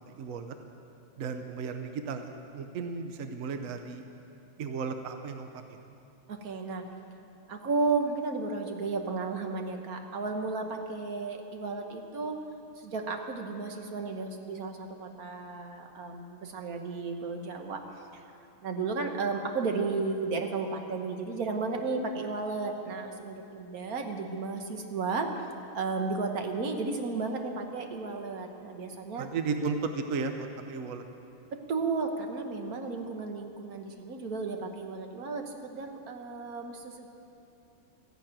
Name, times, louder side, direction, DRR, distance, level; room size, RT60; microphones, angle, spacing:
voice 1, 0.1-0.6 1.2-4.0 4.6-5.8 29.2-31.0, right 4 dB, 70° right, 7 dB, 0.8 m, -35 dB
voice 2, 6.3-6.9 7.5-12.4 12.8-17.8 18.1-18.2 18.6-25.3 25.7-29.3 31.5-37.1, right 4 dB, 50° right, 4 dB, 1.5 m, -33 dB
14.0 x 11.5 x 8.9 m, 2.8 s
omnidirectional pair, 2.3 m